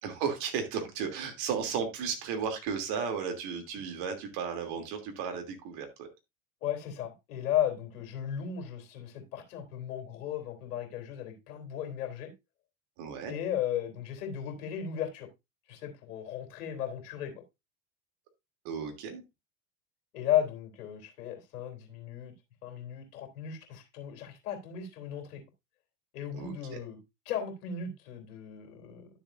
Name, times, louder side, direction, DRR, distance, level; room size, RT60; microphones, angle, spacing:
voice 1, 0.0-6.1 13.0-13.3 18.6-19.2 26.3-26.5, right 6 dB, 55° right, 2.9 m, -34 dB
voice 2, 6.6-12.3 13.3-15.3 15.7-17.3 20.1-22.3 22.6-25.4 26.1-27.0 27.2-29.1, left 10 dB, 65° left, 3.2 m, -35 dB
11.5 x 7.1 x 2.6 m
hypercardioid pair, 85°, 46 cm